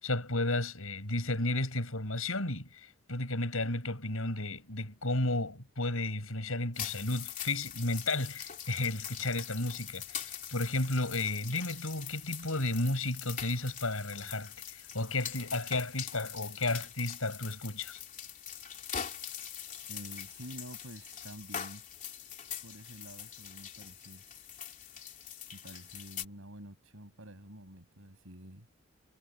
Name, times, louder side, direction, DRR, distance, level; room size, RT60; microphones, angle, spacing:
voice 1, 0.0-18.0, left 2 dB, 75° left, 6.2 m, -33 dB
sound 1, 6.7-26.3, left 9 dB, 35° left, 3.0 m, -43 dB
voice 2, 19.9-21.8 22.6-24.2 25.5-28.7, right 1 dB, 65° right, 7.0 m, -49 dB
head